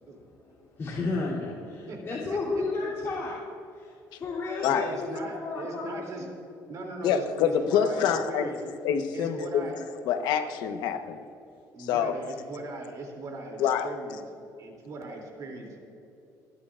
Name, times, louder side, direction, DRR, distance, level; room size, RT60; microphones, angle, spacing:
voice 1, 0.0-3.4 3.7-6.3, left 3 dB, 40° left, -9 dB, 3.0 m, -33 dB
voice 2, 1.9-2.6 4.7-6.2 6.7-8.6 9.1-9.8 11.7-14.2 14.6-15.8, right 2 dB, 55° right, 1 dB, 2.9 m, -39 dB
voice 3, 7.0-8.5 8.8-9.7 10.1-11.2 11.8-12.1 13.6-13.9, left 8 dB, 90° left, 7 dB, 1.1 m, -26 dB
28.5 x 11.0 x 2.5 m, 2.8 s
cardioid pair, 125°, 7 cm